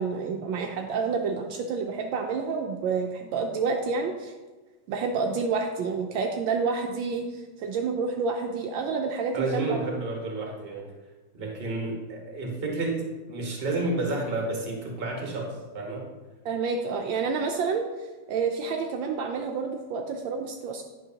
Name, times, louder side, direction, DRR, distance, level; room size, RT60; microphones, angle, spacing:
voice 1, 0.0-4.3 4.9-10.0 16.4-20.8, right 5 dB, 75° right, 3 dB, 1.3 m, -29 dB
voice 2, 9.3-10.8 11.3-16.1, right 2 dB, 30° right, 0 dB, 1.3 m, -30 dB
9.2 x 6.1 x 2.8 m, 1.2 s
omnidirectional pair, 2.2 m